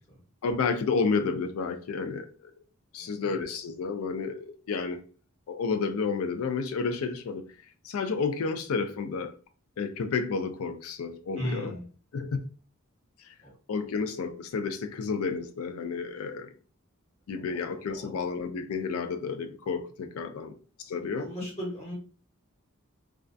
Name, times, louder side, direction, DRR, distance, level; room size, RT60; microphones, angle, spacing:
voice 1, 0.4-2.5 2.9-5.0 5.5-7.4 7.8-9.3 9.8-11.8 12.1-12.5 13.2-13.3 13.7-16.5 17.3-20.5 20.8-21.3, left 4 dB, 75° left, 0.4 m, -31 dB
voice 2, 3.0-3.4 11.4-11.8 13.4-13.5 17.3-17.6 17.9-18.1 20.4-20.5 21.1-21.9, equal, 30° left, 0.8 m, -37 dB
2.3 x 2.2 x 2.5 m
head